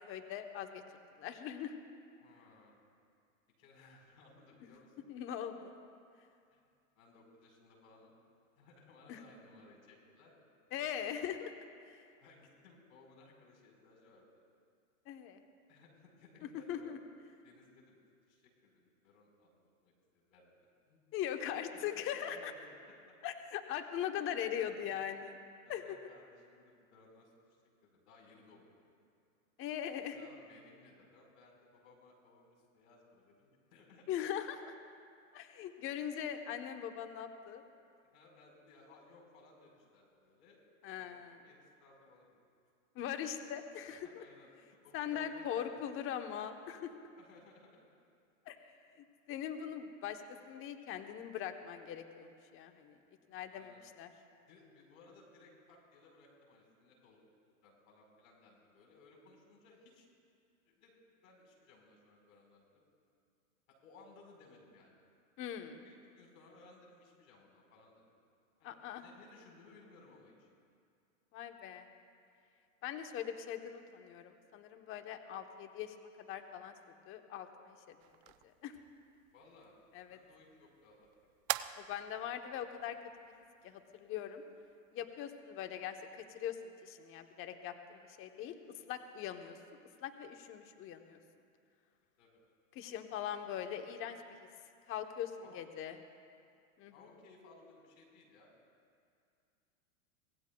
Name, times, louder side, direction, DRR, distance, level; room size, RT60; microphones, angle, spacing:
voice 1, 0.1-0.8 1.2-1.7 5.1-5.7 9.1-9.2 10.7-11.5 11.9-12.0 15.1-15.4 16.7-17.0 21.1-22.5 23.2-25.4 25.7-25.8 29.6-30.2 34.1-34.6 35.3-37.6 40.8-41.4 42.9-44.2 44.9-46.9 48.5-48.6 49.3-53.0 53.3-54.1 65.4-65.8 68.6-69.0 71.3-71.9 72.8-76.7 77.1-78.0 78.4-78.8 79.9-80.2 81.8-83.0 83.6-84.4 84.9-88.6 88.9-89.6 90.0-91.2 92.7-94.2 94.9-96.0 96.8-96.9, left 9 dB, 30° left, 7 dB, 1.0 m, -41 dB
voice 2, 2.2-2.8 3.6-5.1 6.5-6.6 6.9-8.1 8.6-10.3 12.2-14.4 15.7-16.9 17.4-18.0 18.3-19.9 20.3-20.5 20.9-21.0 21.7-23.0 24.6-24.9 25.6-27.3 27.8-28.9 30.0-34.2 38.1-40.6 40.9-42.4 44.0-44.5 44.8-45.8 47.2-47.9 53.5-53.8 54.5-57.2 57.6-60.1 60.6-62.8 63.8-65.0 65.8-68.1 68.6-70.5 79.3-79.8 80.1-81.1 92.2-92.4 95.4-95.6 96.9-98.5, left 3 dB, 70° left, 0 dB, 4.6 m, -61 dB
sound 1, 78.0-84.9, right 15 dB, 40° right, 0.5 m, -46 dB
24.5 x 18.0 x 2.3 m, 2.3 s
hypercardioid pair, 130°, 42 cm